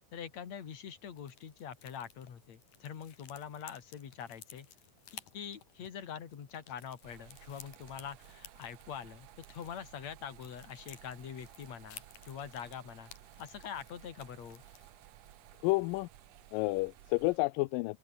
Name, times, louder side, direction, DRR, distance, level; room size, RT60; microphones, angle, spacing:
voice 1, 0.1-4.7 5.1-13.1 13.4-14.6, left 8 dB, 55° left, 3.6 m, -44 dB
sound 1, 1.0-14.9, left 10 dB, 70° left, 3.5 m, -56 dB
sound 2, 7.0-17.4, right 15 dB, 75° right, 1.6 m, -57 dB
voice 2, 15.6-16.1 16.5-18.0, left 22 dB, 85° left, 2.2 m, -30 dB
open air
omnidirectional pair, 3.9 m